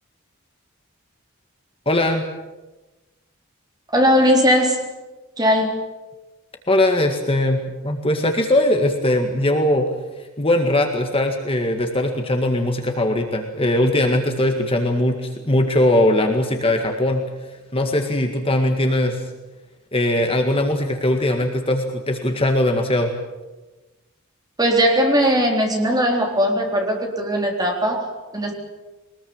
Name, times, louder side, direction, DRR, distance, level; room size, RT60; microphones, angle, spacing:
voice 1, 1.9-2.2 6.7-9.9 10.4-17.2 17.7-19.2 19.9-23.1, left 1 dB, 25° left, 4 dB, 1.9 m, -20 dB
voice 2, 3.9-4.8 5.4-5.8 24.6-28.5, equal, 20° right, 1 dB, 3.8 m, -19 dB
22.5 x 20.5 x 8.9 m, 1.1 s
head